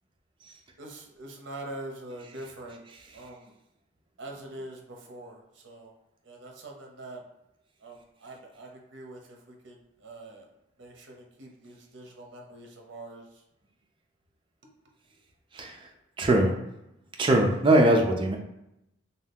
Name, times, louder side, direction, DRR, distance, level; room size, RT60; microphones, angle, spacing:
voice 1, 0.8-2.8 3.1-3.5 4.2-6.0 6.2-7.2 7.8-10.5 10.8-13.4, right 1 dB, 65° right, 1 dB, 0.6 m, -44 dB
voice 2, 15.5-15.9 16.2-16.6 17.2-18.4, right 1 dB, 25° right, 2 dB, 0.4 m, -22 dB
2.7 x 2.2 x 3.4 m, 0.85 s
head